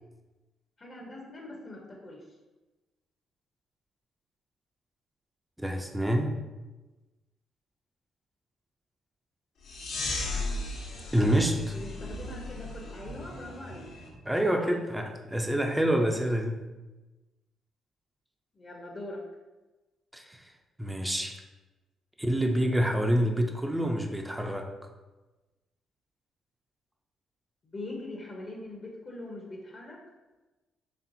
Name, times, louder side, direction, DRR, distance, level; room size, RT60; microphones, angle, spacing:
voice 1, 0.8-2.2 11.7-13.9 14.5-14.7 18.5-19.2 27.6-30.0, left 2 dB, 35° left, -1 dB, 0.7 m, -42 dB
voice 2, 5.6-6.4 11.1-11.7 14.2-16.6 20.1-20.4 20.8-21.4 22.2-24.7, right 1 dB, 5° right, 2 dB, 0.4 m, -27 dB
sound 1, 9.6-14.1, left 2 dB, 80° left, 0.8 m, -36 dB
4.3 x 3.3 x 2.6 m, 1.1 s
cardioid pair, 90°, 0 cm